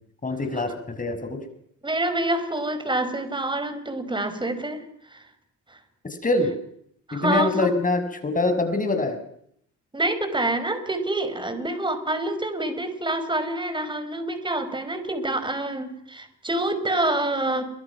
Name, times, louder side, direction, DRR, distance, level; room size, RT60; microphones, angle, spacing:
voice 1, 0.2-1.4 6.2-6.5 7.1-9.2, left 2 dB, 25° left, 8 dB, 6.2 m, -24 dB
voice 2, 1.8-5.2 5.7-5.8 7.1-7.7 9.9-17.7, right 1 dB, 15° right, 10 dB, 5.2 m, -27 dB
28.5 x 24.5 x 6.1 m, 0.69 s
cardioid pair, 90°, 30 cm